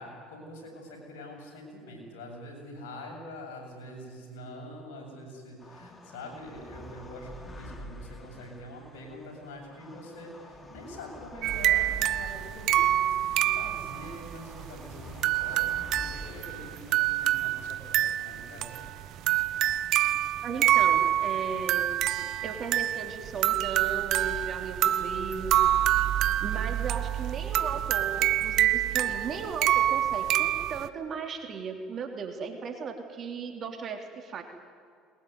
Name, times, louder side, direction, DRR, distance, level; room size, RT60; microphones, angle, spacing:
voice 1, 0.0-18.9, left 1 dB, 80° left, 1 dB, 7.7 m, -45 dB
sound 1, 5.6-18.0, left 1 dB, 25° left, 3.3 m, -48 dB
sound 2, 11.4-30.9, right 13 dB, 60° right, 1.0 m, -27 dB
voice 2, 20.4-21.9 22.4-25.6 26.4-34.4, right 5 dB, 45° right, 5 dB, 3.3 m, -36 dB
21.5 x 21.5 x 9.5 m, 2.3 s
hypercardioid pair, 75°, 0 cm